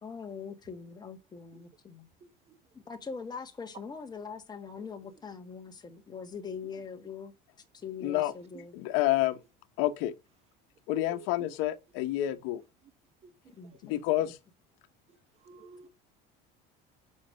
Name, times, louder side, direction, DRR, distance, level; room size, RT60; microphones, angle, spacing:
voice 1, 0.0-2.1 2.7-7.3 7.7-8.7 13.5-14.3, left 5 dB, 20° left, 1.6 m, -42 dB
voice 2, 2.2-2.6 8.5-8.7 10.9-11.6 13.2-13.8 15.1-15.9, right 6 dB, 35° right, 1.1 m, -52 dB
voice 3, 8.0-8.3 8.7-9.4 9.8-10.1 10.9-12.6 13.8-14.4, left 15 dB, 80° left, 0.9 m, -28 dB
7.2 x 5.3 x 6.4 m
cardioid pair, 145°, 20 cm